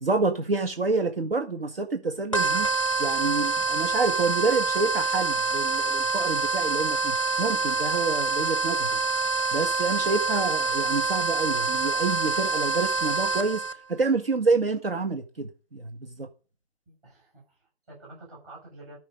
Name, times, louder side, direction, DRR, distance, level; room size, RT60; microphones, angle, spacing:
voice 1, 0.0-2.7 3.0-9.0 9.5-13.6 13.9-16.3, right 3 dB, 60° right, 1.8 m, -28 dB
sound 1, 2.3-13.7, right 4 dB, 30° left, 0.7 m, -26 dB
voice 2, 16.9-19.0, right 2 dB, 15° right, 6.8 m, -48 dB
13.5 x 5.7 x 5.3 m
hypercardioid pair, 180°, 33 cm